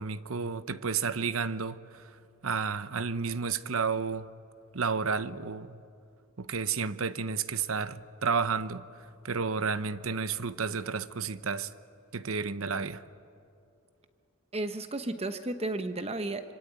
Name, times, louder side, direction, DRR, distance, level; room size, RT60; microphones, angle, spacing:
voice 1, 0.0-2.0 2.4-4.3 4.7-5.8 6.4-8.9 9.2-11.7 12.1-13.0, right 5 dB, 90° right, 0.9 m, -31 dB
voice 2, 14.5-16.5, right 2 dB, 30° right, 1.0 m, -33 dB
26.0 x 24.5 x 9.0 m
head